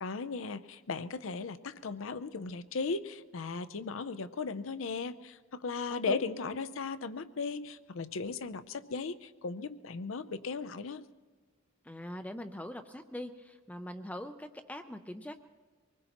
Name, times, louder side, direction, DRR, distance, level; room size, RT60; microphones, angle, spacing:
voice 1, 0.0-11.0, left 4 dB, 75° left, 14 dB, 0.6 m, -37 dB
voice 2, 11.8-15.4, left 1 dB, 5° left, 7 dB, 0.5 m, -42 dB
24.5 x 20.0 x 3.0 m, 1.3 s
head